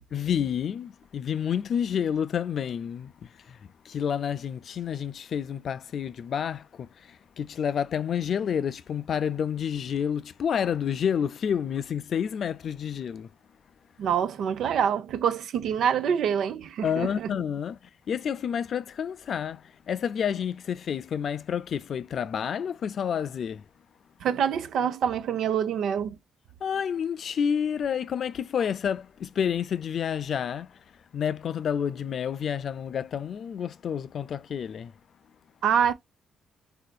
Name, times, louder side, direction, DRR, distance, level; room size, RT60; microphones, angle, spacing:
voice 1, 0.1-13.3 16.8-17.8 18.1-23.6 26.6-30.8 31.1-34.9, left 8 dB, 55° left, 0.3 m, -29 dB
voice 2, 14.0-17.3 24.2-26.2 35.6-35.9, right 8 dB, 70° right, 0.4 m, -26 dB
3.5 x 2.5 x 2.2 m
cardioid pair, 90°, 0 cm